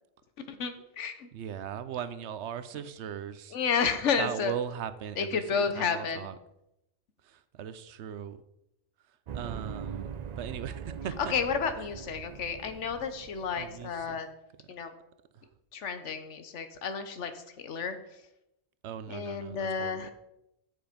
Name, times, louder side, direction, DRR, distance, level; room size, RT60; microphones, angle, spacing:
voice 1, 0.4-1.3 3.5-4.5 5.2-6.3 11.3-14.3 14.7-14.9 15.7-18.0 19.1-20.1, left 6 dB, 85° left, 9 dB, 1.2 m, -31 dB
voice 2, 1.3-3.6 4.2-6.3 7.2-8.4 9.3-10.1 10.4-11.3 13.6-14.2 14.6-14.7 18.8-20.1, right 9 dB, 75° right, 13 dB, 0.9 m, -38 dB
sound 1, 9.3-14.0, right 7 dB, 55° right, 0.4 m, -41 dB
7.8 x 6.8 x 5.1 m, 0.84 s
omnidirectional pair, 1.2 m